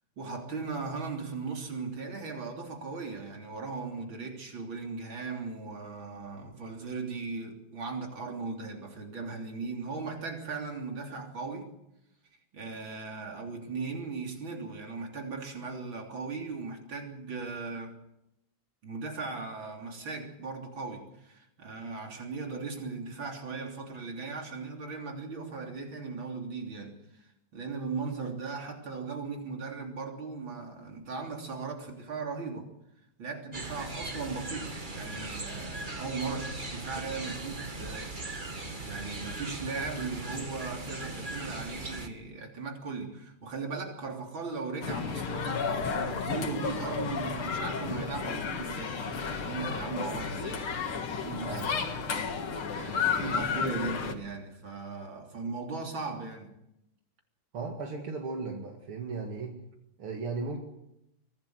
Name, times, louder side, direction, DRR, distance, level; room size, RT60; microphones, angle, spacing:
voice 1, 0.2-11.7 12.5-18.0 18.8-32.7 33.2-38.1 38.8-51.6 52.7-56.5, right 4 dB, 65° right, 4.1 m, -38 dB
sound 1, 33.5-42.1, right 2 dB, 25° right, 1.9 m, -39 dB
sound 2, 44.8-54.1, left 5 dB, 85° left, 2.8 m, -32 dB
voice 2, 51.4-51.9 57.5-59.6 60.0-60.6, right 4 dB, 85° right, 3.1 m, -36 dB
24.0 x 16.5 x 7.9 m
omnidirectional pair, 2.3 m